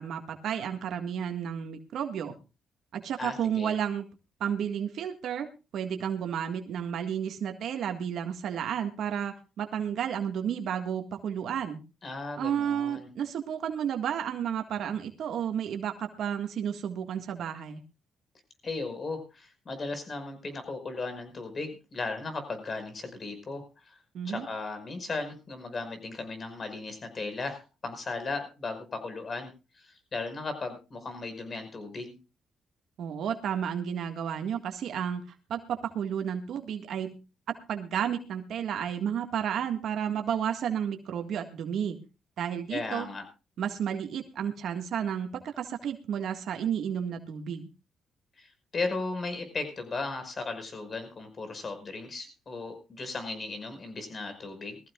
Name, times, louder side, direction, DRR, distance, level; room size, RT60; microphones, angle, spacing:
voice 1, 0.0-2.3 2.9-4.1 4.4-5.5 5.7-11.8 12.4-17.8 24.1-24.4 33.0-37.2 37.5-42.0 42.4-43.1 43.6-47.7, right 8 dB, 70° right, 5 dB, 1.7 m, -32 dB
voice 2, 3.2-3.7 12.0-13.1 18.6-23.9 24.3-29.5 29.8-32.2 42.7-43.3 48.4-54.8, left 3 dB, 40° left, 8 dB, 5.3 m, -36 dB
21.5 x 15.0 x 2.4 m, 0.30 s
cardioid pair, 90°, 0 cm